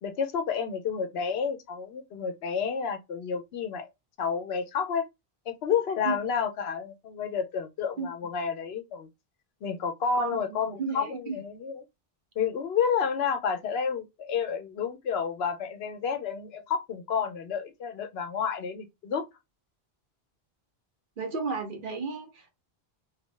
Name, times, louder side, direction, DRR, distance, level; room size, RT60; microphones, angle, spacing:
voice 1, 0.0-3.9 4.2-5.0 5.5-9.1 9.6-11.8 12.4-19.2, left 6 dB, 85° left, 0.9 m, -30 dB
voice 2, 10.2-11.3 21.2-22.5, right 4 dB, 55° right, 0.9 m, -33 dB
2.8 x 2.0 x 3.1 m
omnidirectional pair, 1.0 m